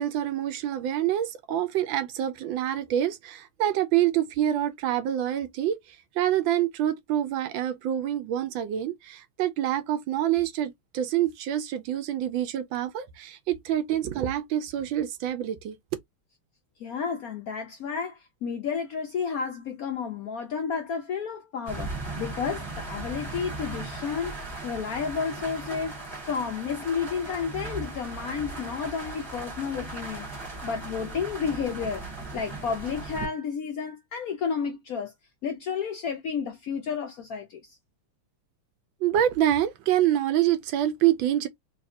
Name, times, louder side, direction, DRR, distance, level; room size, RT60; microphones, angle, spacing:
voice 1, 0.0-15.8 39.0-41.5, right 11 dB, 75° right, 1.2 m, -26 dB
voice 2, 16.8-26.0 26.2-30.3 30.6-32.0 32.3-35.1 35.4-37.8, left 6 dB, 75° left, 0.8 m, -31 dB
sound 1, 21.7-33.3, right 3 dB, 15° right, 1.0 m, -37 dB
3.5 x 3.1 x 2.6 m
omnidirectional pair, 2.3 m